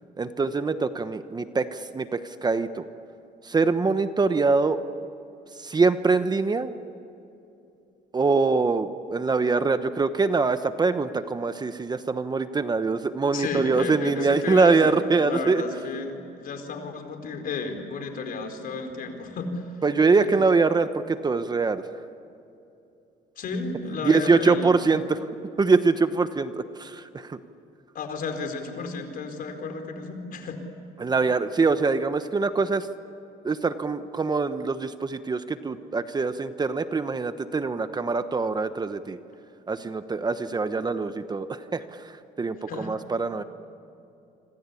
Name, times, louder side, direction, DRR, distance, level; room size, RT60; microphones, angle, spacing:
voice 1, 0.2-2.9 3.4-4.8 5.6-6.8 8.1-15.6 19.8-21.8 24.0-25.2 25.6-27.4 31.0-32.9 33.4-39.2 39.7-43.4, right 4 dB, 25° right, 10 dB, 1.1 m, -24 dB
voice 2, 13.3-15.0 15.2-19.6 20.1-20.4 23.4-24.9 27.9-30.6 42.7-42.9, left 4 dB, 60° left, 5 dB, 4.6 m, -33 dB
27.0 x 26.0 x 8.5 m, 2.8 s
cardioid pair, 110°, 17 cm